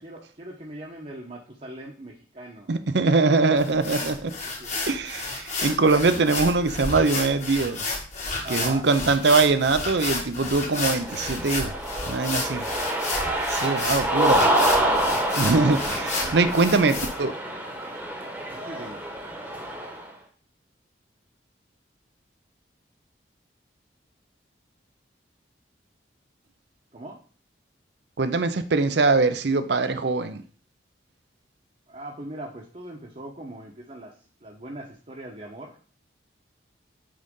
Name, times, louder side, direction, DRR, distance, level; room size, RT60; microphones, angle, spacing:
voice 1, 0.0-2.7 4.6-4.8 8.4-8.9 12.4-12.7 16.0-16.6 18.6-19.0 26.9-27.2 31.9-34.1 34.4-35.8, right 1 dB, 35° right, 1.0 m, -41 dB
voice 2, 2.7-4.3 4.9-7.8 8.5-11.7 12.1-12.6 13.5-14.5 15.3-17.3 28.2-30.4, right 3 dB, 65° right, 0.6 m, -22 dB
sound 1, 3.6-17.1, left 3 dB, 40° left, 1.6 m, -31 dB
Cheering, 10.8-20.0, right 1 dB, 10° right, 1.1 m, -27 dB
10.0 x 4.0 x 3.7 m
head